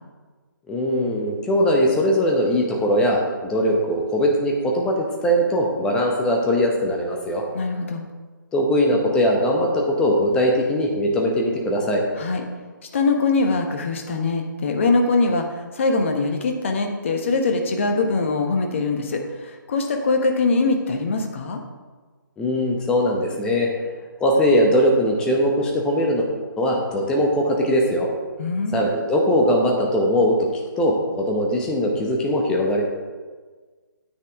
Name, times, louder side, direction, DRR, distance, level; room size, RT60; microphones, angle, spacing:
voice 1, 0.7-7.4 8.5-12.0 22.4-23.7 24.2-26.3 26.6-28.1 28.7-30.5 30.8-32.8, equal, 5° left, 0 dB, 1.0 m, -20 dB
voice 2, 7.5-8.0 12.2-12.4 12.9-21.6 28.4-28.9, left 3 dB, 35° left, 4 dB, 1.1 m, -22 dB
9.4 x 8.5 x 3.5 m, 1.4 s
figure-of-eight pair, 145°, 11 cm